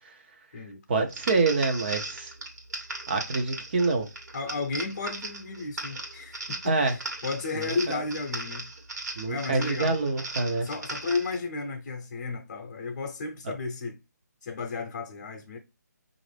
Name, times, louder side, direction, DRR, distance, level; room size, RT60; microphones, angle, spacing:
voice 1, 0.9-2.3 3.1-4.1 6.6-7.0 7.5-8.0 9.2-10.7 13.4-13.5, right 3 dB, 35° right, 0.7 m, -26 dB
sound 1, 1.1-11.4, right 2 dB, 65° right, 1.4 m, -38 dB
voice 2, 4.3-8.7 9.2-10.0 10.6-14.0 14.4-15.6, left 4 dB, 35° left, 0.7 m, -33 dB
4.8 x 2.6 x 3.3 m
hypercardioid pair, 165°, 10 cm